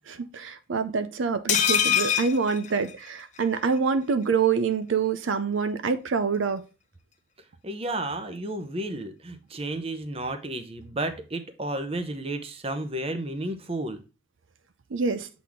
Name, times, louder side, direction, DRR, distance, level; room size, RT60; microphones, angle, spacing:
voice 1, 0.1-6.6 14.9-15.3, right 5 dB, 80° right, 0.5 m, -26 dB
sound 1, 1.5-3.4 3.8-3.9 4.1-4.2, left 9 dB, 40° left, 0.9 m, -25 dB
voice 2, 7.6-14.0, right 1 dB, 30° right, 0.8 m, -32 dB
7.5 x 4.1 x 3.5 m
head